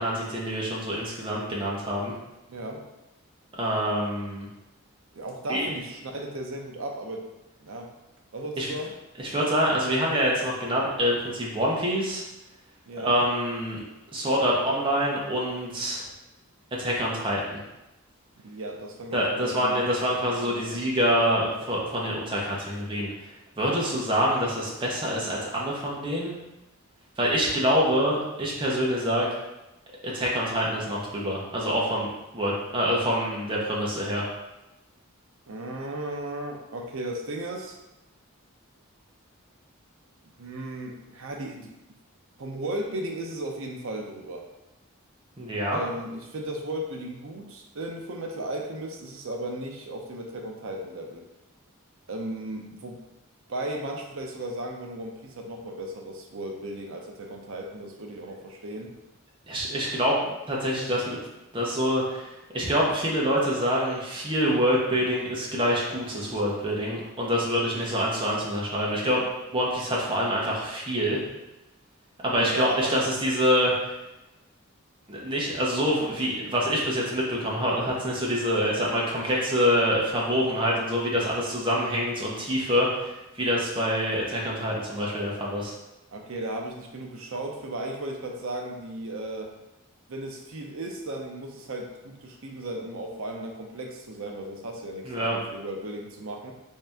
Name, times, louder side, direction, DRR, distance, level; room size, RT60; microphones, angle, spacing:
voice 1, 0.0-2.1 3.6-4.5 5.5-5.7 8.6-8.7 9.2-12.2 13.0-13.8 14.1-16.0 16.7-17.6 19.1-23.1 23.6-26.3 27.2-29.3 30.0-34.3 45.4-45.8 59.5-60.1 60.5-61.2 61.5-62.3 62.5-69.2 69.5-71.2 72.2-73.7 75.1-85.7 95.0-95.4, equal, 25° right, -4 dB, 0.7 m, -26 dB
voice 2, 2.5-2.8 5.1-7.3 7.6-7.9 8.3-8.9 12.9-13.2 18.4-20.8 35.5-37.8 40.4-41.7 42.4-44.5 45.7-51.2 52.1-53.0 53.5-58.9 60.1-60.3 72.4-73.0 86.1-89.5 90.1-96.5, right 1 dB, 70° right, 2 dB, 0.6 m, -35 dB
3.3 x 2.7 x 3.5 m, 0.98 s
head